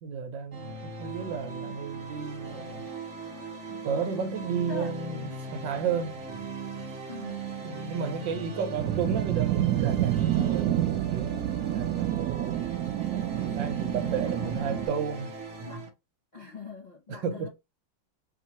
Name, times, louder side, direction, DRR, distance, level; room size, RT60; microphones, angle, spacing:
voice 1, 0.0-2.9 3.7-6.5 7.6-12.2 13.4-15.3 15.6-15.8 17.1-17.5, right 6 dB, 70° right, 1.4 m, -33 dB
sound 1, 0.5-15.9, right 3 dB, 50° right, 0.9 m, -39 dB
voice 2, 4.7-5.4 7.1-7.5 14.0-15.0 15.6-15.8 16.3-17.5, left 4 dB, 70° left, 0.4 m, -43 dB
sound 2, 8.8-14.9, right 12 dB, 90° right, 0.8 m, -28 dB
4.5 x 2.9 x 2.9 m
omnidirectional pair, 2.2 m